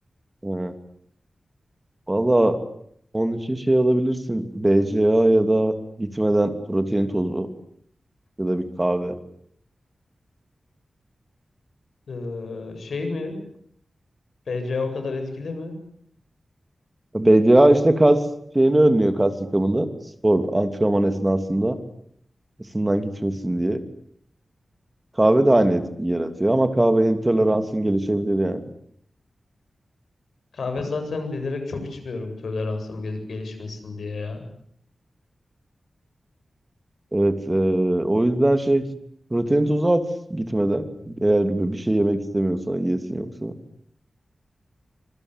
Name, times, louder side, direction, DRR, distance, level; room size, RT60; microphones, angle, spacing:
voice 1, 2.1-2.6 3.1-5.7 6.0-7.5 8.4-9.1 17.1-18.2 18.5-19.9 20.2-21.8 22.7-23.8 25.2-28.6 37.1-38.8 39.3-43.5, right 1 dB, 15° right, 8 dB, 2.9 m, -20 dB
voice 2, 12.1-13.4 14.5-15.8 30.5-34.4, left 3 dB, 80° left, 6 dB, 8.0 m, -30 dB
25.5 x 25.0 x 8.2 m, 0.68 s
wide cardioid pair, 110°, 0 cm